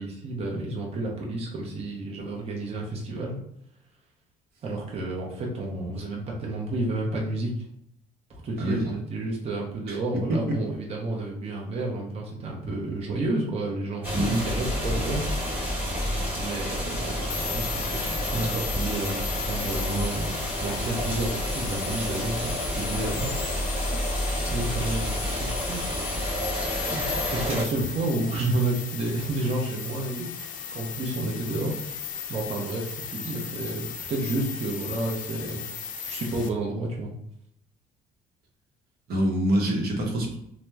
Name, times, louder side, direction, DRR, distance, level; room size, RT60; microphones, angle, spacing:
voice 1, 0.0-3.4 4.6-7.5 8.3-15.2 16.3-23.3 24.3-25.8 26.9-37.1, right 2 dB, 40° right, -2 dB, 0.6 m, -31 dB
voice 2, 8.6-8.9 9.9-10.0 10.3-10.6 14.1-14.4 39.1-40.4, right 1 dB, 65° right, 0 dB, 0.8 m, -25 dB
sound 1, 14.0-27.6, equal, 10° right, 1.0 m, -29 dB
sound 2, 17.3-36.5, left 7 dB, 50° left, 0.4 m, -37 dB
2.9 x 2.0 x 2.2 m, 0.74 s
cardioid pair, 110°, 17 cm